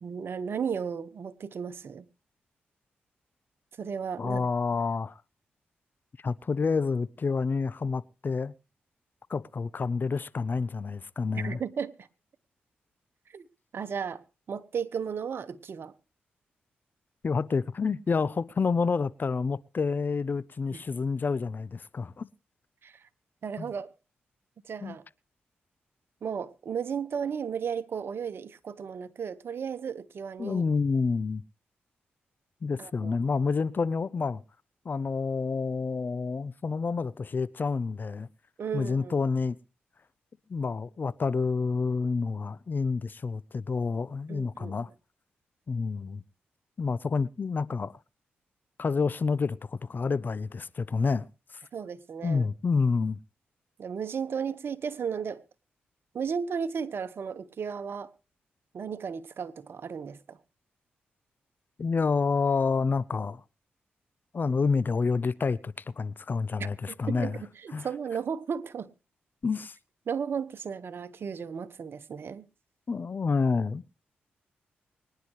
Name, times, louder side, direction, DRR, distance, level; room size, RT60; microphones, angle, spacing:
voice 1, 0.0-2.0 3.8-4.5 11.3-12.1 13.3-13.5 13.7-14.2 14.5-15.9 20.7-20.8 22.8-23.1 23.4-23.9 24.6-25.0 26.2-30.6 32.8-33.1 38.6-39.1 44.3-44.9 51.7-52.5 53.8-55.4 56.1-58.1 58.7-60.4 66.6-68.9 70.1-72.5, right 6 dB, 65° right, 1.3 m, -34 dB
voice 2, 4.2-5.2 6.2-8.5 9.3-11.6 17.2-22.3 23.6-23.7 24.8-25.0 30.4-31.4 32.6-34.4 34.8-38.3 38.7-39.6 40.5-44.9 45.7-46.2 46.8-48.0 48.8-51.3 52.2-53.2 61.8-63.4 64.3-67.4 67.7-67.9 69.4-69.8 72.9-74.0, left 4 dB, 50° left, 0.7 m, -28 dB
24.5 x 10.5 x 3.2 m
supercardioid pair, 50°, 4 cm